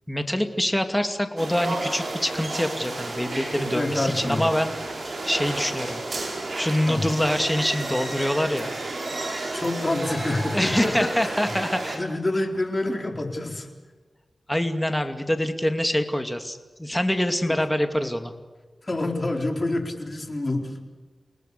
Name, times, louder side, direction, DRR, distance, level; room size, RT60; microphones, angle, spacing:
voice 1, 0.1-4.7 5.0-6.1 6.6-8.8 10.5-12.0 14.5-18.3, left 1 dB, 10° left, 7 dB, 2.5 m, -25 dB
sound 1, 1.4-12.0, right 2 dB, 60° right, 6.7 m, -32 dB
voice 2, 3.7-4.5 6.9-7.0 9.5-11.3 11.9-13.7 17.5-17.6 18.8-20.7, left 2 dB, 35° left, 3 dB, 4.2 m, -27 dB
30.0 x 19.0 x 6.9 m, 1.4 s
wide cardioid pair, 65°, 0 cm